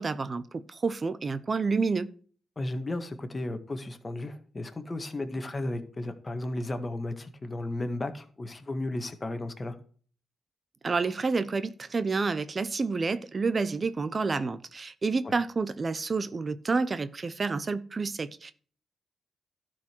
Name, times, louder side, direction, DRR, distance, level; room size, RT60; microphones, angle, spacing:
voice 1, 0.0-2.1 10.8-18.5, right 4 dB, 40° right, 0.8 m, -29 dB
voice 2, 2.6-9.8 15.2-15.3, left 2 dB, 30° left, 1.7 m, -34 dB
12.0 x 5.1 x 6.1 m
cardioid pair, 65°, 0 cm